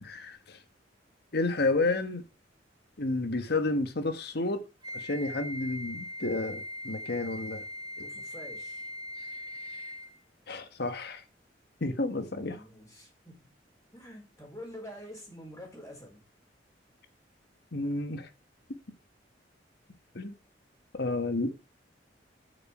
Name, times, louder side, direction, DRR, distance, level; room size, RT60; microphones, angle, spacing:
voice 1, 0.0-0.6 1.3-2.2 3.0-4.6 4.9-7.6 10.5-11.2 11.8-12.6 17.7-18.3 20.1-20.4 20.9-21.5, left 2 dB, 60° left, 1.3 m, -31 dB
Wind instrument woodwind instrument, 4.8-10.2, left 1 dB, 25° right, 1.7 m, -40 dB
voice 2, 8.0-8.9 12.5-13.5 13.9-16.2, left 1 dB, 20° left, 4.6 m, -47 dB
8.5 x 6.7 x 4.9 m
head